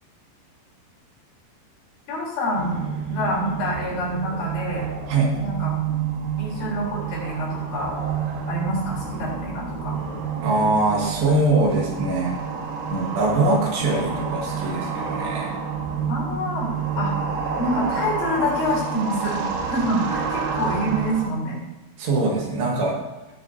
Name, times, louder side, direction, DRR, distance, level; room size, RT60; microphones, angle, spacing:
voice 1, 2.1-4.9 5.4-5.7 6.4-7.9 8.5-10.0 12.9-13.0 16.1-16.7 17.0-17.1 17.6-21.6, equal, 75° left, -5 dB, 6.0 m, -27 dB
sound 1, 2.5-21.3, right 6 dB, 85° right, 3.9 m, -29 dB
voice 2, 10.4-12.4 12.9-15.6 22.0-23.0, right 2 dB, 70° right, -2 dB, 4.0 m, -22 dB
17.0 x 7.1 x 2.7 m, 1.1 s
omnidirectional pair, 5.3 m